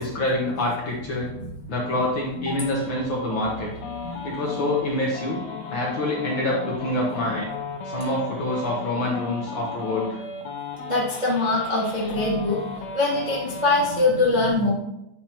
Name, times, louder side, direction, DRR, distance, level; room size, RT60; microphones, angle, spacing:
voice 1, 0.0-1.3 1.7-3.7 4.2-5.4 5.7-7.5 7.8-10.2, left 1 dB, 60° left, -3 dB, 1.3 m, -26 dB
voice 2, 1.3-1.6 1.9-2.0 2.4-2.6 4.0-4.3 5.6-5.7 10.9-12.6 12.9-14.7, left 2 dB, 65° right, -6 dB, 0.4 m, -23 dB
sound 1, 2.5-14.1, left 4 dB, 80° left, 2.1 m, -36 dB
8.8 x 5.0 x 3.0 m, 0.86 s
omnidirectional pair, 3.4 m